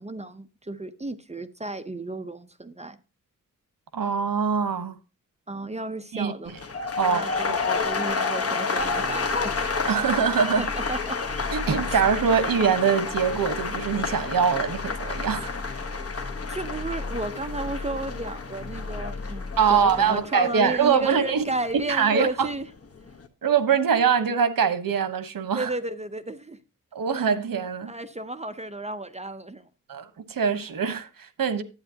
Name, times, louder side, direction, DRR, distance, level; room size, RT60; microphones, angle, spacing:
voice 1, 0.0-3.0 5.5-6.5 7.0-9.6 10.6-11.2 11.9-12.1 16.5-22.7 25.5-26.6 27.9-29.7, right 2 dB, 20° right, 0.7 m, -33 dB
voice 2, 3.9-5.0 6.1-6.3 7.0-7.5 9.9-10.6 11.5-15.8 19.6-21.4 21.9-22.5 23.4-25.7 26.9-27.9 29.9-31.6, right 6 dB, 80° right, 1.2 m, -23 dB
sound 1, 6.5-22.5 22.8-23.3, left 4 dB, 45° left, 1.3 m, -31 dB
sound 2, 8.8-20.2, left 3 dB, 25° left, 2.2 m, -37 dB
11.5 x 9.0 x 2.8 m
wide cardioid pair, 115°, 34 cm